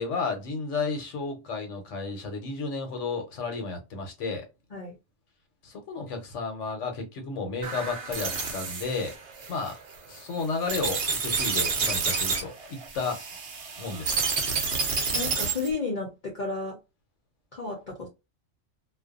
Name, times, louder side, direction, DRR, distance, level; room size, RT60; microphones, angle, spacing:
voice 1, 0.0-4.4 5.6-9.1 9.5-9.7 10.1-13.2 13.8-14.2, left 4 dB, 75° left, 1.1 m, -32 dB
sound 1, 7.6-15.7, right 4 dB, 60° right, 0.9 m, -29 dB
voice 2, 15.1-16.8 17.5-18.1, left 3 dB, 45° left, 0.7 m, -32 dB
2.5 x 2.3 x 2.4 m
omnidirectional pair, 1.3 m